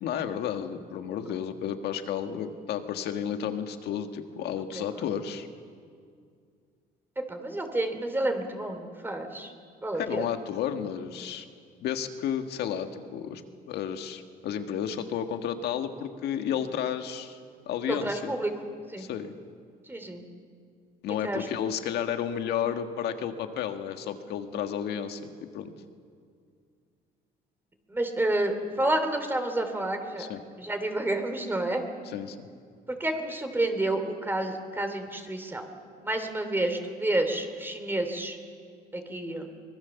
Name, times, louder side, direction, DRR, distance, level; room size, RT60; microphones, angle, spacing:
voice 1, 0.0-5.5 9.9-11.5 11.8-13.4 13.7-17.4 17.7-18.3 19.0-19.3 21.0-25.7 30.2-30.4 32.0-32.5, left 9 dB, 75° left, 7 dB, 1.7 m, -32 dB
voice 2, 7.2-9.5 9.8-10.2 17.9-18.5 18.9-19.0 19.9-20.2 21.2-21.5 27.9-30.3 30.6-31.9 32.9-35.6 36.0-38.4 38.9-39.5, right 1 dB, 10° right, 6 dB, 2.8 m, -29 dB
24.5 x 21.0 x 7.1 m, 2.2 s
cardioid pair, 110°, 17 cm